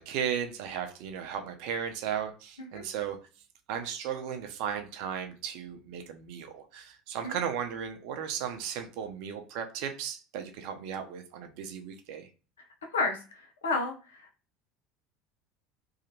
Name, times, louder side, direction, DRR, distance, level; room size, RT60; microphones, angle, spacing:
voice 1, 0.0-3.2 3.7-12.3, right 8 dB, 60° right, 0.6 m, -35 dB
voice 2, 13.6-14.2, left 3 dB, 75° left, 0.6 m, -30 dB
2.8 x 2.4 x 2.7 m
figure-of-eight pair, 70°, 0 cm